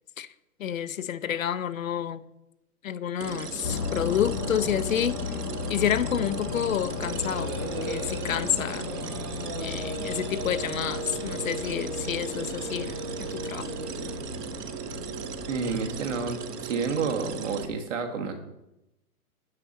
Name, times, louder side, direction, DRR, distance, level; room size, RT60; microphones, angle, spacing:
voice 1, 0.6-2.2 2.8-5.4 5.7-8.9 9.6-13.7, left 9 dB, 60° left, 13 dB, 0.6 m, -29 dB
sound 1, 3.2-17.7, right 6 dB, 85° right, 1.2 m, -37 dB
sound 2, 3.6-16.3, left 6 dB, 85° left, 1.2 m, -36 dB
sound 3, 6.1-14.2, right 2 dB, 20° right, 1.0 m, -38 dB
voice 2, 15.5-18.3, right 5 dB, 55° right, 4 dB, 1.7 m, -30 dB
9.6 x 8.2 x 4.2 m, 0.90 s
hypercardioid pair, 175°, 46 cm